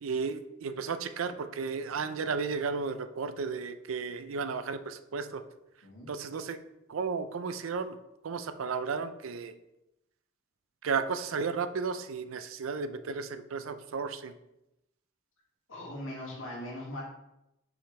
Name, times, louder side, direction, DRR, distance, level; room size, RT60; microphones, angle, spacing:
voice 1, 0.0-5.4 6.1-6.6 6.9-8.0 8.2-9.5 10.8-14.3, right 5 dB, 85° right, 11 dB, 0.5 m, -34 dB
voice 2, 15.7-17.0, left 1 dB, 70° left, -3 dB, 2.1 m, -40 dB
6.3 x 4.9 x 3.2 m, 0.89 s
head